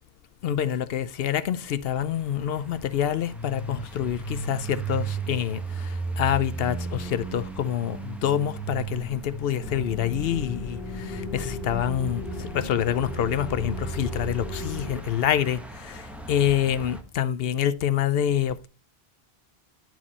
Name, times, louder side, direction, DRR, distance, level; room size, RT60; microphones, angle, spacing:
voice 1, 0.4-18.7, left 10 dB, 70° left, 0.8 m, -27 dB
sound 1, 1.8-17.0, right 3 dB, ahead, 1.0 m, -36 dB
sound 2, 9.6-14.9, left 1 dB, 60° right, 1.9 m, -36 dB
10.5 x 4.7 x 4.1 m
omnidirectional pair, 1.0 m